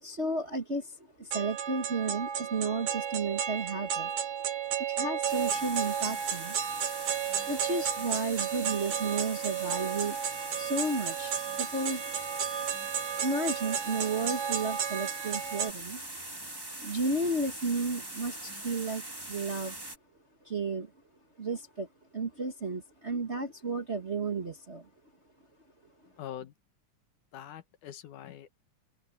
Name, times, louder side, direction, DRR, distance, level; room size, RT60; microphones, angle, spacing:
voice 1, 0.0-4.1 4.8-6.6 7.4-10.2 10.5-12.0 13.2-16.0 16.8-19.0 19.3-19.8 20.4-20.9 21.4-21.9 22.1-24.9, right 3 dB, 30° right, 1.2 m, -33 dB
sound 1, 1.3-15.7, right 8 dB, 75° right, 3.7 m, -33 dB
sound 2, 5.3-20.0, right 1 dB, 10° right, 1.3 m, -42 dB
voice 2, 26.2-26.5 27.3-28.5, left 10 dB, 85° left, 2.8 m, -43 dB
open air
omnidirectional pair, 3.5 m